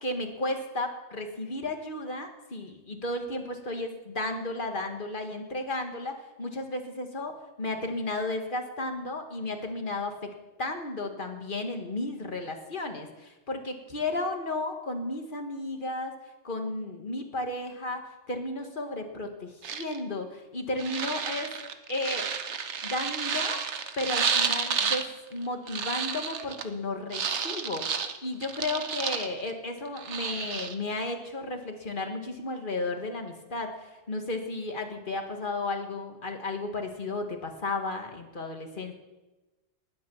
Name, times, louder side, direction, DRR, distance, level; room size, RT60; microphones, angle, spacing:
voice 1, 0.0-10.3 10.6-16.1 16.4-21.5 21.9-22.3 22.8-23.6 24.0-38.9, left 2 dB, 50° left, 4 dB, 1.8 m, -33 dB
sound 1, 19.6-20.0 20.8-25.0 25.3-26.7 27.1-29.5 29.8-30.7, right 6 dB, 80° right, 1.3 m, -31 dB
19.0 x 8.4 x 7.1 m, 1.1 s
omnidirectional pair, 1.2 m